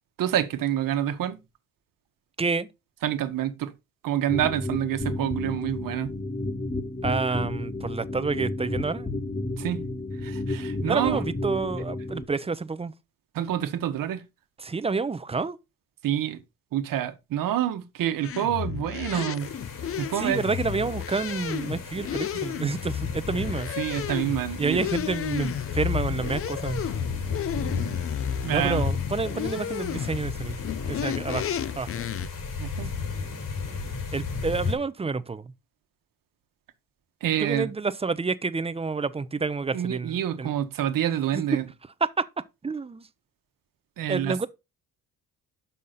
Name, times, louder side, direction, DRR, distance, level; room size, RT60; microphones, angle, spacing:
voice 1, 0.2-1.4 3.0-3.7 4.0-6.1 9.6-9.8 10.2-11.2 13.3-14.2 16.0-16.4 16.7-19.5 20.0-20.4 22.3-22.4 23.8-24.8 28.4-28.8 32.6-32.9 37.2-37.7 39.7-41.6 44.0-44.3, right 11 dB, 75° right, 1.1 m, -27 dB
voice 2, 2.4-2.7 7.0-9.1 10.8-12.9 14.6-15.6 19.1-19.3 20.1-23.7 24.6-26.8 28.5-30.6 30.9-31.5 31.8-32.1 34.1-35.5 37.4-40.5 41.3-41.4 42.0-42.3 42.6-43.1 44.1-44.5, right 4 dB, 20° right, 0.5 m, -29 dB
sound 1, 4.3-12.2, left 2 dB, 20° left, 1.2 m, -32 dB
sound 2, 18.2-32.3, left 9 dB, 45° left, 0.5 m, -32 dB
sound 3, 19.4-34.8, left 4 dB, 70° left, 3.7 m, -35 dB
6.3 x 5.6 x 4.0 m
cardioid pair, 90°, 33 cm